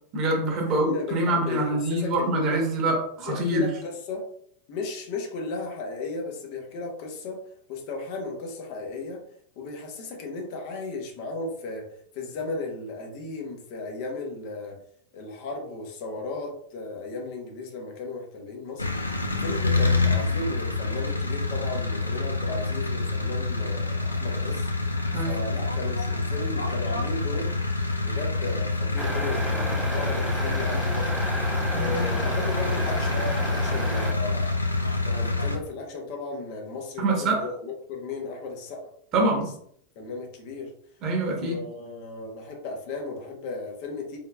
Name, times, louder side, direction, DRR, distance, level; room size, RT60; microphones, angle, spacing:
voice 1, 0.1-3.7 25.1-25.4 31.7-32.1 37.0-37.4 39.1-39.5 41.0-41.6, right 2 dB, 35° right, 0 dB, 1.0 m, -25 dB
voice 2, 0.7-2.6 3.2-4.2 4.7-7.4 7.7-9.2 9.6-11.9 12.1-14.8 15.1-18.9 19.4-24.7 25.2-27.5 28.0-31.2 31.7-34.5 35.0-39.4 40.0-40.7 41.4-44.2, left 3 dB, 45° left, 1 dB, 0.8 m, -35 dB
sound 1, 18.8-35.6, left 3 dB, 80° left, 0.4 m, -27 dB
sound 2, 29.0-34.1, right 1 dB, 5° right, 0.4 m, -32 dB
3.7 x 3.1 x 2.3 m, 0.66 s
figure-of-eight pair, 90°, 0 cm